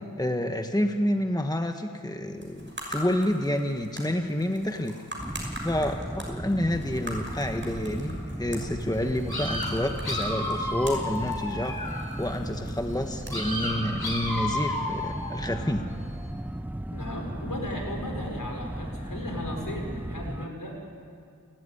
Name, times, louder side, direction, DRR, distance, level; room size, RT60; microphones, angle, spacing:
voice 1, 0.2-4.9 5.6-11.8 12.2-15.9, left 1 dB, 10° left, 6 dB, 1.3 m, -29 dB
sound 1, 2.3-14.7, equal, 30° right, 6.5 m, -43 dB
sound 2, 5.2-20.5, right 1 dB, 5° right, 0.6 m, -36 dB
sound 3, 9.3-12.2 13.3-15.7, left 2 dB, 85° left, 3.8 m, -32 dB
voice 2, 16.9-20.8, left 1 dB, 60° left, 1 dB, 5.5 m, -36 dB
28.5 x 13.5 x 10.0 m, 2.3 s
wide cardioid pair, 45°, 36 cm